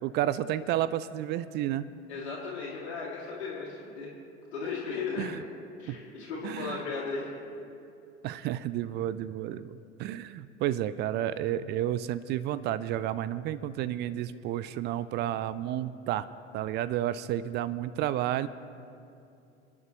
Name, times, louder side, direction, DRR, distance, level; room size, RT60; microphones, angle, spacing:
voice 1, 0.0-1.9 5.2-5.4 5.9-6.0 6.4-6.8 8.2-16.3 16.5-18.5, right 12 dB, 30° right, 16 dB, 0.4 m, -31 dB
voice 2, 2.1-4.1 4.5-5.4 5.8-7.3, left 4 dB, 70° left, -6 dB, 2.7 m, -36 dB
28.0 x 9.7 x 3.0 m, 2.6 s
figure-of-eight pair, 70°, 35 cm